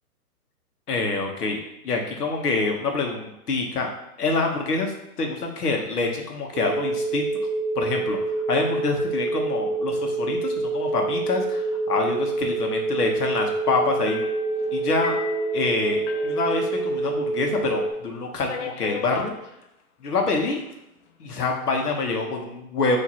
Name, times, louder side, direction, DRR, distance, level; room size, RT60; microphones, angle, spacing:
voice 1, 0.9-3.9 4.2-4.9 5.2-7.3 7.7-14.2 14.7-15.2 15.5-19.3 20.0-20.6 21.2-23.0, left 3 dB, 85° left, 2 dB, 1.2 m, -26 dB
sound 1, 6.5-17.9, right 3 dB, 5° right, 0.4 m, -26 dB
sound 2, 14.1-17.3 17.5-17.6 18.4-19.3 20.3-20.7, left 6 dB, 50° left, 0.6 m, -36 dB
5.9 x 2.9 x 3.0 m, 0.86 s
hypercardioid pair, 140°, 45 cm